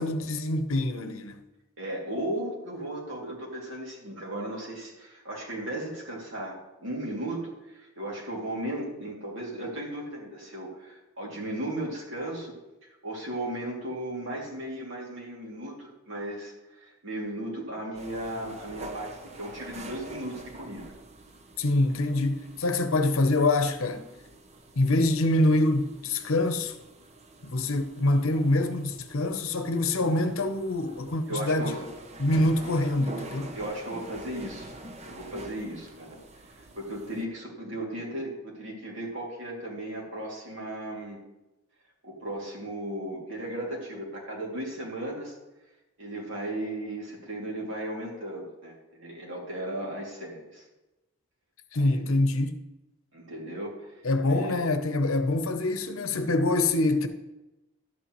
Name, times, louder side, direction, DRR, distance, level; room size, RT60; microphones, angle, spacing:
voice 1, 0.0-1.4 21.6-24.1 24.8-26.7 27.4-31.8 32.2-33.6 51.7-52.6 54.0-57.1, left 2 dB, 75° left, 0.8 m, -25 dB
voice 2, 1.8-12.6 13.0-20.9 28.1-28.2 31.3-31.9 33.5-34.7 35.0-36.2 36.4-41.2 42.0-45.3 46.0-50.6 51.7-52.0 53.1-54.6, right 1 dB, 60° right, 2.7 m, -36 dB
sound 1, 17.9-37.2, right 2 dB, 30° right, 0.6 m, -46 dB
12.0 x 8.5 x 3.1 m
head